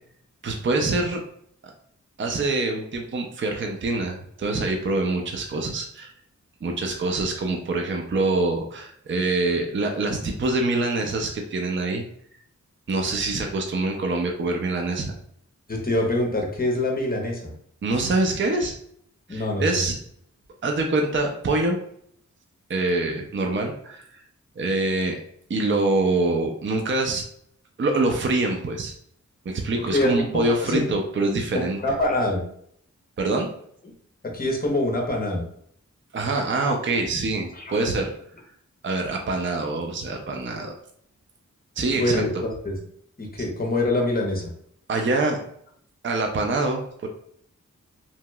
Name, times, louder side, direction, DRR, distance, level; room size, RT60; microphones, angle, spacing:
voice 1, 0.4-1.2 2.2-6.1 6.6-12.0 12.9-15.1 17.8-18.7 19.3-19.9 20.6-21.8 22.7-24.2 24.6-25.2 25.5-27.2 27.8-28.9 29.5-31.8 33.2-33.5 36.1-38.1 38.8-40.7 41.8-42.2 44.9-45.4 46.0-47.1, right 2 dB, 40° right, 2 dB, 0.5 m, -25 dB
voice 2, 15.7-17.5 19.3-19.9 29.7-30.8 31.5-32.4 34.3-35.4 37.5-37.8 41.9-42.8 43.2-44.4, left 1 dB, 30° left, 0 dB, 0.8 m, -25 dB
2.9 x 2.8 x 2.2 m, 0.66 s
wide cardioid pair, 75°, 30 cm